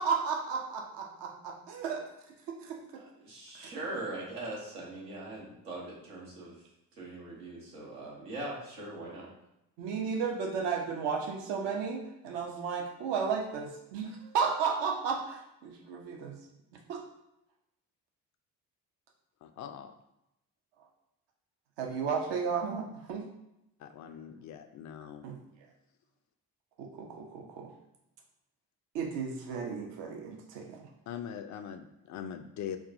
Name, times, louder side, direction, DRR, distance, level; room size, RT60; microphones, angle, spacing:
voice 1, 0.0-2.0 2.5-3.0 3.6-3.7 9.8-16.4 16.9-17.0 21.8-23.3 25.2-25.4 26.8-27.7 28.9-30.8, right 6 dB, 60° right, 2 dB, 0.8 m, -34 dB
voice 2, 3.0-6.5 7.0-9.3, right 2 dB, 80° right, -5 dB, 1.2 m, -41 dB
voice 3, 19.4-19.9 23.8-25.2 31.1-32.8, left 8 dB, 40° left, 8 dB, 0.4 m, -42 dB
4.7 x 2.3 x 2.6 m, 0.85 s
figure-of-eight pair, 40°, 48 cm